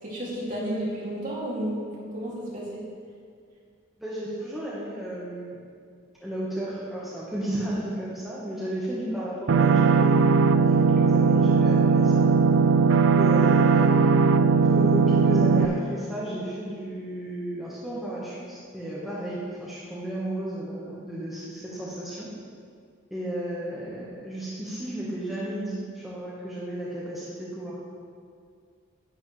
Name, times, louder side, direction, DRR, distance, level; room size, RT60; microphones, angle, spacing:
voice 1, 0.0-2.8, right 1 dB, 40° right, -7 dB, 2.7 m, -32 dB
voice 2, 4.0-5.6 6.2-10.3 10.6-12.3 13.2-14.2 14.6-22.3 23.1-27.8, right 1 dB, ahead, -9 dB, 1.4 m, -33 dB
sound 1, 9.5-15.7, right 5 dB, 80° right, 0.5 m, -19 dB
10.0 x 9.3 x 3.3 m, 2.1 s
head